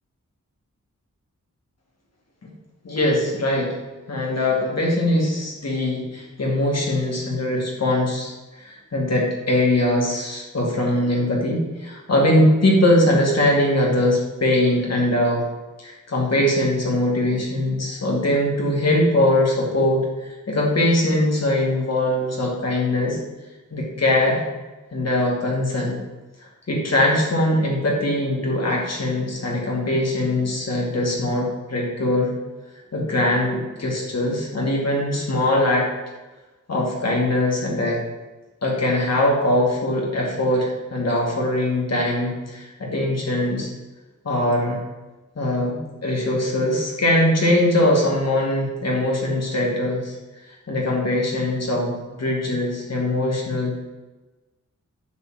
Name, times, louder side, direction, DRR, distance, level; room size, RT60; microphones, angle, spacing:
voice 1, 2.8-3.8 4.1-15.4 15.8-23.2 23.7-24.4 24.9-26.0 26.7-32.3 32.9-35.9 36.7-38.0 38.6-43.7 44.2-44.8 45.4-50.2 50.7-53.8, left 1 dB, 55° left, -2 dB, 2.2 m, -21 dB
9.5 x 4.2 x 7.3 m, 1.2 s
wide cardioid pair, 120°, 31 cm